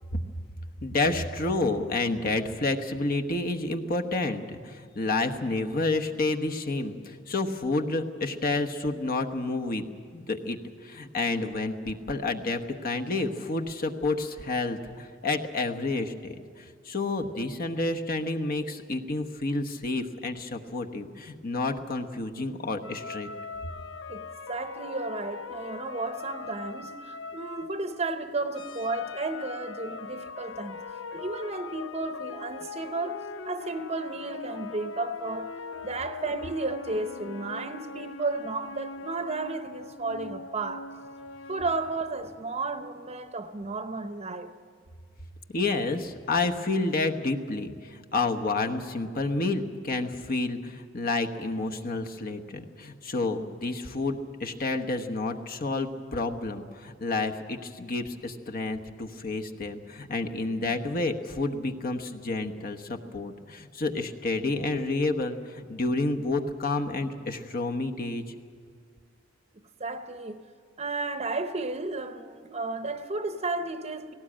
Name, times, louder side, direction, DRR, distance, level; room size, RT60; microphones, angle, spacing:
voice 1, 0.8-9.8 10.1-10.6 10.8-23.3 45.5-68.2, left 2 dB, 50° left, 1.1 m, -30 dB
sound 1, 22.8-28.1 28.5-42.2, left 4 dB, 85° left, 0.7 m, -41 dB
voice 2, 24.1-30.8 31.1-35.5 35.8-40.9 41.5-44.5 69.8-70.4 70.8-74.1, right 3 dB, 35° right, 0.8 m, -33 dB
18.0 x 17.5 x 8.8 m
head